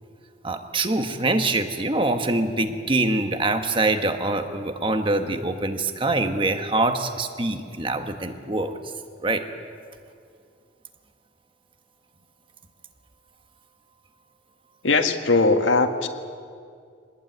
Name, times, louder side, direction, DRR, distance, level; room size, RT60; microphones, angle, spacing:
voice 1, 0.4-8.8 9.2-9.4, right 2 dB, 25° right, 7 dB, 1.4 m, -24 dB
voice 2, 14.8-16.1, left 3 dB, 80° left, 5 dB, 1.8 m, -20 dB
24.0 x 20.0 x 9.3 m, 2.3 s
head